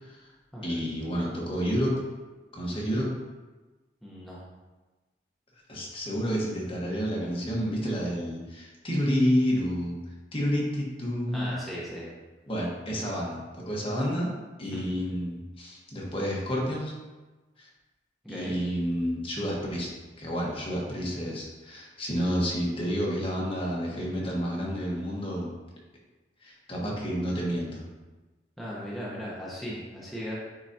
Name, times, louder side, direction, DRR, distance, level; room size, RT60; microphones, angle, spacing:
voice 1, 0.6-2.0 2.5-3.1 5.7-10.0 10.3-11.5 12.5-14.3 14.6-16.9 17.6-17.7 18.3-19.9 20.2-25.5 26.4-27.8, equal, 30° left, -4 dB, 1.3 m, -29 dB
voice 2, 4.0-4.4 11.3-12.1 14.7-14.8 18.2-18.6 28.6-30.3, equal, ahead, -7 dB, 1.1 m, -37 dB
9.0 x 4.0 x 2.8 m, 1.2 s
head